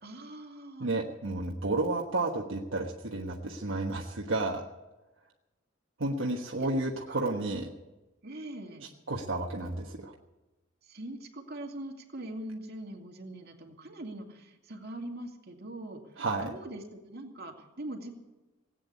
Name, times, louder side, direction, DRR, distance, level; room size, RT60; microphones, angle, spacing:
voice 1, 0.0-0.9 6.6-6.8 7.1-7.5 8.2-8.9 10.8-18.1, right 1 dB, 55° right, 1 dB, 2.5 m, -42 dB
voice 2, 0.8-4.6 6.0-7.7 9.1-10.1 16.2-16.5, right 2 dB, 70° right, -1 dB, 1.4 m, -31 dB
18.5 x 9.0 x 8.3 m, 1.1 s
head